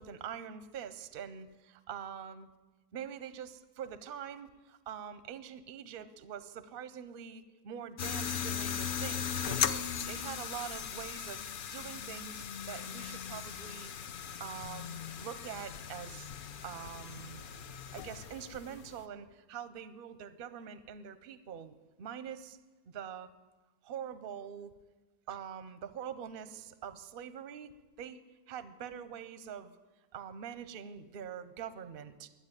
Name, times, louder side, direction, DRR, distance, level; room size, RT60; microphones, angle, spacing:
voice 1, 0.0-2.5 2.9-11.4 11.7-13.9 14.4-16.3 16.6-17.4 17.9-22.6 22.9-23.3 23.8-24.7 25.3-27.7 28.0-28.2 28.5-29.7 30.1-32.3, right 8 dB, 55° right, 14 dB, 0.7 m, -44 dB
sound 1, 8.0-19.0, left 8 dB, 65° left, 0.5 m, -38 dB
11.5 x 8.3 x 9.7 m, 1.2 s
omnidirectional pair, 1.5 m